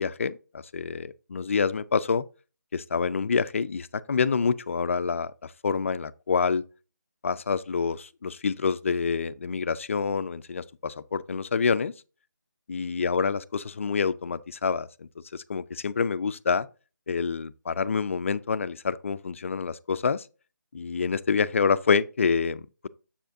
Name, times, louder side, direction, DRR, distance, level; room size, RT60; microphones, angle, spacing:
voice 1, 0.0-2.2 2.7-6.6 7.2-11.9 12.7-16.7 17.1-20.3 20.7-22.9, left 5 dB, 40° left, 0.4 m, -27 dB
7.3 x 6.8 x 2.6 m
figure-of-eight pair, 165°, 11 cm